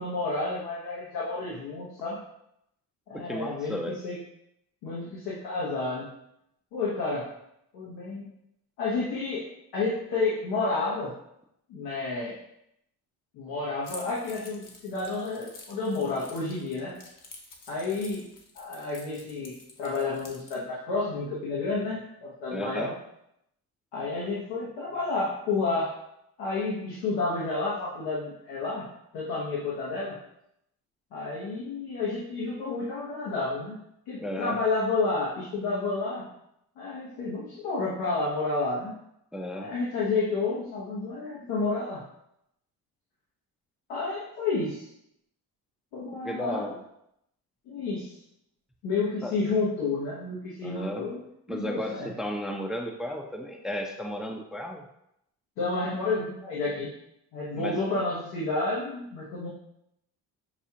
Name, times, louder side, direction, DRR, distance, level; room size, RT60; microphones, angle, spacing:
voice 1, 0.0-2.2 3.1-3.8 4.0-4.2 4.8-6.1 6.7-7.3 7.7-8.3 8.8-9.4 9.7-11.1 11.7-12.4 13.3-17.0 17.7-18.2 18.5-22.9 23.9-25.9 26.4-28.9 29.1-30.2 31.1-36.3 36.8-39.0 39.5-42.0 43.9-44.9 45.9-46.7 47.7-48.1 48.8-51.2 51.5-52.1 55.6-56.9 57.3-59.5, left 3 dB, 90° left, -6 dB, 1.1 m, -30 dB
voice 2, 3.1-4.0 22.5-22.9 34.2-34.6 39.3-39.7 46.2-46.7 49.2-49.4 50.6-51.1 51.5-54.9 57.6-57.8, equal, ahead, 2 dB, 0.5 m, -34 dB
Keys jangling, 13.8-20.6, left 3 dB, 55° left, 1.0 m, -49 dB
6.2 x 2.4 x 2.8 m, 0.77 s
supercardioid pair, 70°, 38 cm